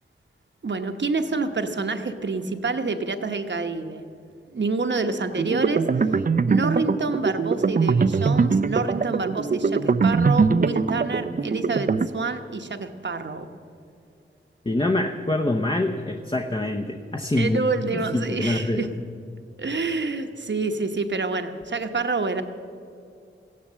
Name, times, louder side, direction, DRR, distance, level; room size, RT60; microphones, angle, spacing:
voice 1, 0.6-4.0 4.5-5.8 6.5-13.5 17.4-18.9 19.6-22.4, right 3 dB, 60° right, 7 dB, 1.0 m, -27 dB
sound 1, 5.3-12.1, right 4 dB, 45° right, 0.5 m, -22 dB
voice 2, 14.6-17.6 17.9-18.9, left 1 dB, 25° left, 4 dB, 0.8 m, -25 dB
14.5 x 10.5 x 7.4 m, 2.4 s
wide cardioid pair, 60°, 21 cm